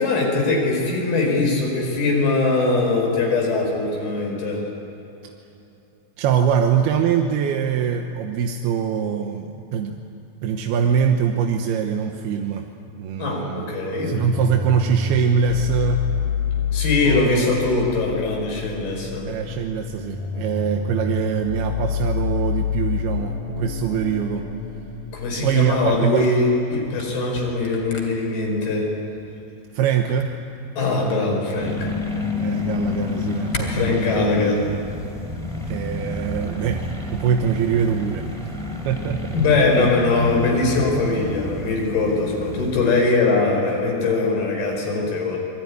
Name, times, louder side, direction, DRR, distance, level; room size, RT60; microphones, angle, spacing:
voice 1, 0.0-4.7 13.2-14.2 16.7-19.3 25.1-28.9 30.8-31.9 33.6-34.7 39.3-45.4, left 3 dB, 80° left, 1 dB, 6.9 m, -21 dB
voice 2, 6.2-10.0 10.4-12.7 13.0-13.7 14.0-16.0 17.0-17.6 19.3-24.5 25.4-26.3 29.7-30.3 32.4-34.0 35.7-38.3 38.9-39.4 39.8-39.9, right 7 dB, 85° right, 3 dB, 3.1 m, -23 dB
sound 1, 13.9-25.9, left 7 dB, 55° left, 4.0 m, -28 dB
Camera, 26.2-33.6, left 3 dB, 35° left, 3.5 m, -39 dB
sound 2, 31.6-42.8, left 2 dB, ahead, 4.3 m, -30 dB
27.0 x 21.5 x 9.7 m, 3.0 s
omnidirectional pair, 4.4 m